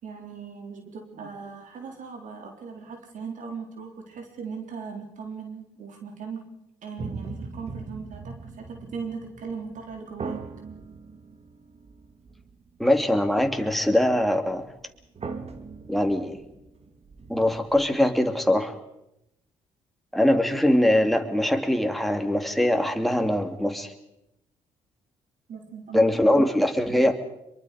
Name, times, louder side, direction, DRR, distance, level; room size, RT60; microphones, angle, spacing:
voice 1, 0.0-6.5 6.8-10.4 25.5-26.2, right 5 dB, 65° right, 3 dB, 3.8 m, -38 dB
sound 1, 7.0-13.1 13.4-13.6 14.1-14.2 14.6-14.7 15.0-18.0, right 4 dB, 45° right, 2.6 m, -40 dB
voice 2, 12.8-14.7 15.9-16.4 17.3-18.8 20.1-23.9 25.9-27.1, left 1 dB, ahead, 5 dB, 2.9 m, -22 dB
24.0 x 23.0 x 5.1 m, 0.85 s
supercardioid pair, 55°, 14 cm